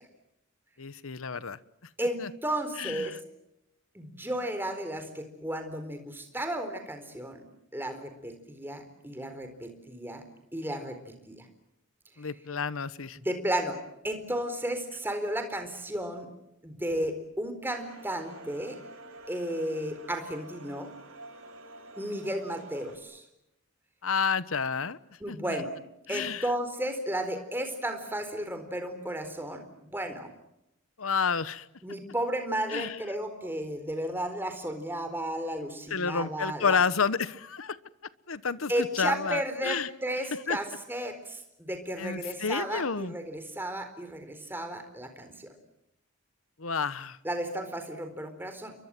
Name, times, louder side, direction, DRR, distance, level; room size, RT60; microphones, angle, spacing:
voice 1, 0.8-1.6 2.2-2.3 2.8-3.2 12.2-13.2 24.0-25.0 25.3-25.6 26.1-26.5 31.0-31.7 32.7-33.0 35.9-37.8 38.3-39.9 40.5-40.6 42.0-43.1 46.6-47.2, left 5 dB, 85° left, 16 dB, 1.1 m, -30 dB
voice 2, 2.0-3.2 3.9-7.4 7.7-10.2 10.5-11.5 13.2-13.8 14.0-16.3 16.6-18.8 19.3-20.9 22.0-23.2 25.2-25.7 26.1-30.3 31.8-36.8 38.7-45.5 47.2-48.7, right 1 dB, 10° right, 7 dB, 4.2 m, -33 dB
sound 1, 17.7-23.0, right 1 dB, 75° right, 5.0 m, -48 dB
30.0 x 23.5 x 7.7 m, 0.84 s
head